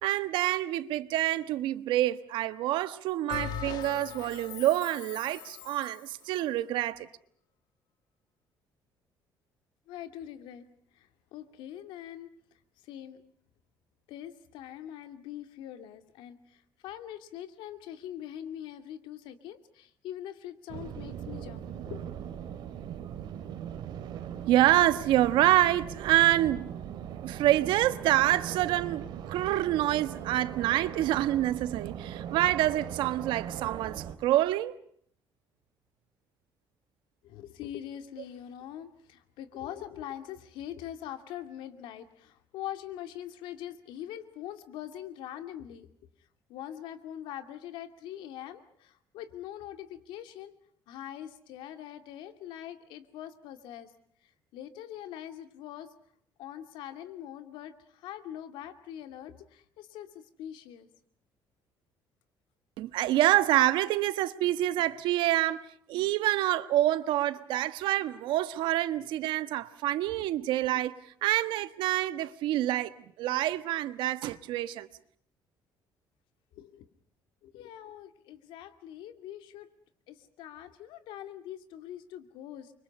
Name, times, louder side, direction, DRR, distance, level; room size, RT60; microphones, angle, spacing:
voice 1, 0.0-7.1 24.5-26.7 27.2-34.7 62.8-65.6 65.9-70.9 71.2-72.9 73.2-74.9, right 14 dB, 80° right, 1.3 m, -27 dB
Bell, 3.3-6.1, left 8 dB, 60° left, 2.0 m, -40 dB
voice 2, 9.9-10.6 10.9-12.3 12.8-13.2 14.1-22.1 37.2-45.9 46.5-50.5 50.9-53.9 54.2-55.9 56.4-60.9 70.1-70.3 76.5-76.9 77.4-79.7 80.1-82.7, left 11 dB, 90° left, 2.4 m, -43 dB
sound 1, 20.7-34.2, right 9 dB, 65° right, 3.0 m, -40 dB
30.0 x 24.5 x 5.4 m
cardioid pair, 150°, 8 cm